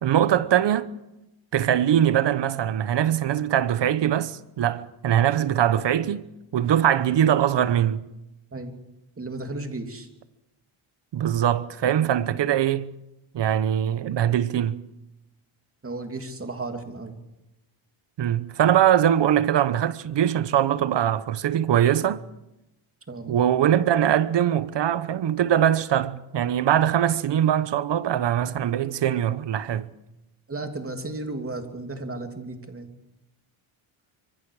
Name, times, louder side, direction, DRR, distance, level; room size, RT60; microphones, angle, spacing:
voice 1, 0.0-0.9 1.5-6.3 6.5-8.1 11.1-12.9 13.3-14.8 18.2-22.2 23.3-29.9, right 10 dB, 55° right, 1.1 m, -22 dB
voice 2, 9.2-10.1 15.8-17.1 23.1-23.4 30.5-32.9, right 2 dB, 25° right, 3.0 m, -34 dB
25.0 x 24.0 x 4.9 m
cardioid pair, 115°, 50 cm